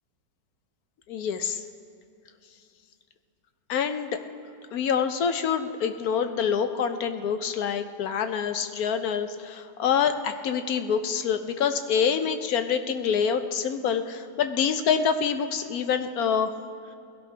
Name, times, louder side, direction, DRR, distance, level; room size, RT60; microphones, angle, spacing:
voice 1, 1.1-1.6 3.7-4.2 4.7-16.5, left 7 dB, 65° left, 8 dB, 1.1 m, -26 dB
20.5 x 16.5 x 3.3 m, 2.6 s
omnidirectional pair, 1.8 m